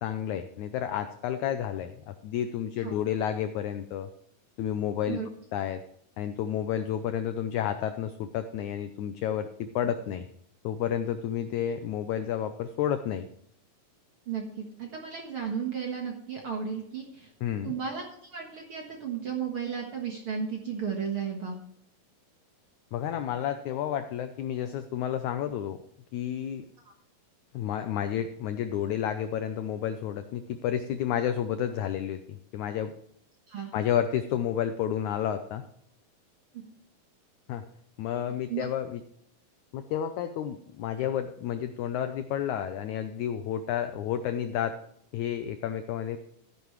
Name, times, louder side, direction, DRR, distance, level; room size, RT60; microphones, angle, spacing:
voice 1, 0.0-4.1 4.6-5.2 5.5-5.8 6.2-10.2 10.6-13.3 17.4-17.7 22.9-25.8 26.1-26.6 27.5-32.9 33.7-35.6 37.5-37.6 38.0-39.0 39.7-44.8 45.1-46.2, left 9 dB, 80° left, 9 dB, 1.7 m, -31 dB
voice 2, 14.3-17.3 17.6-21.6 33.5-33.7 36.5-36.7 38.5-38.7, right 7 dB, 55° right, 1 dB, 1.7 m, -34 dB
13.5 x 10.5 x 3.1 m, 0.70 s
omnidirectional pair, 4.2 m